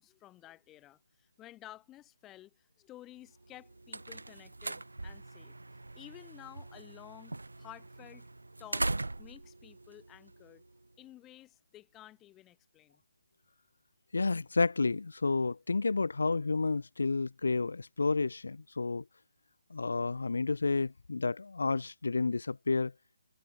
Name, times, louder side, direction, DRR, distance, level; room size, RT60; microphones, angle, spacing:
voice 1, 0.0-5.5 5.9-8.3 8.6-8.9 9.2-10.6 11.0-13.0, left 14 dB, 15° left, 1.2 m, -53 dB
sound 1, 3.4-10.9, right 2 dB, 70° right, 0.5 m, -41 dB
voice 2, 14.1-19.0 19.7-22.9, left 3 dB, 60° left, 0.5 m, -30 dB
figure-of-eight pair, 145°, 0 cm